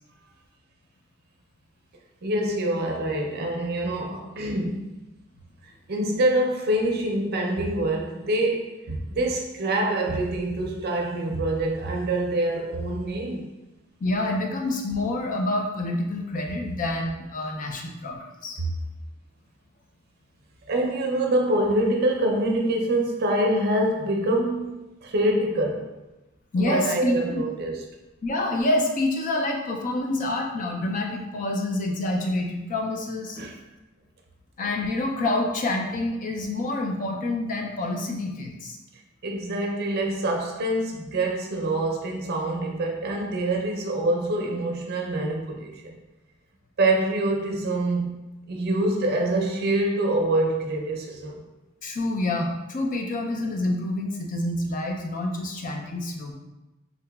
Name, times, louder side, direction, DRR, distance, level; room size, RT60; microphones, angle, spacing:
voice 1, 2.2-5.0 5.9-13.5 18.6-18.7 20.7-25.9 26.6-27.8 33.4-33.5 39.2-46.0 46.8-48.1 48.5-51.4, right 1 dB, 50° right, 0.5 m, -25 dB
voice 2, 14.0-18.6 26.5-27.4 28.2-33.4 34.6-38.8 51.8-56.3, left 2 dB, 40° left, 0.4 m, -27 dB
3.8 x 2.8 x 2.3 m
head